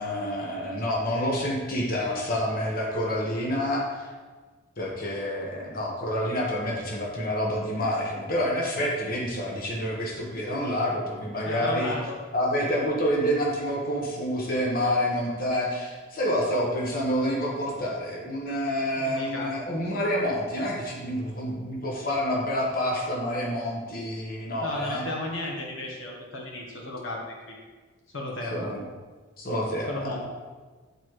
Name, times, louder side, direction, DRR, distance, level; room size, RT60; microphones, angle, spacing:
voice 1, 0.0-4.1 4.8-11.9 12.3-25.0 28.5-28.8 29.4-30.2, equal, 45° left, -3 dB, 1.1 m, -28 dB
voice 2, 11.4-12.2 19.0-19.5 24.6-27.6 28.1-28.7 29.9-30.3, left 1 dB, 70° left, -1 dB, 1.2 m, -34 dB
9.3 x 4.6 x 3.2 m, 1.4 s
head